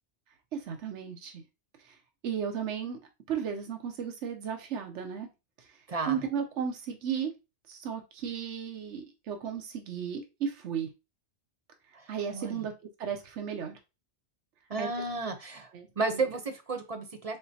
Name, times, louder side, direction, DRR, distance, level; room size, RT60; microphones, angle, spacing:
voice 1, 0.5-1.4 1.8-2.0 2.2-3.0 3.3-5.3 5.6-5.8 6.1-7.3 7.7-10.9 12.1-13.8 14.8-14.9 15.7-16.3, right 7 dB, 90° right, 5 dB, 1.0 m, -35 dB
voice 2, 5.9-6.2 11.9-12.7 14.7-15.7 16.0-17.4, right 3 dB, 35° right, 7 dB, 0.7 m, -33 dB
4.2 x 3.9 x 2.7 m, 0.27 s
omnidirectional pair, 1.2 m